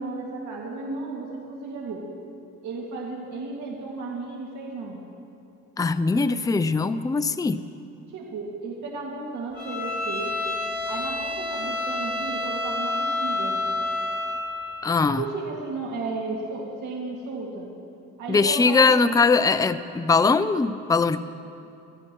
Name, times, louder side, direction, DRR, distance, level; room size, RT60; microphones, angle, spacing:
voice 1, 0.0-2.1 2.6-5.0 8.1-10.4 10.9-13.6 15.0-17.7 18.2-19.1, right 3 dB, 75° right, -3 dB, 2.2 m, -34 dB
voice 2, 5.8-7.6 14.8-15.2 18.3-21.2, left 4 dB, 10° left, 12 dB, 0.4 m, -21 dB
Bowed string instrument, 9.6-14.4, left 2 dB, 15° right, 2.9 m, -28 dB
24.5 x 14.5 x 3.1 m, 2.6 s
cardioid pair, 90°, 30 cm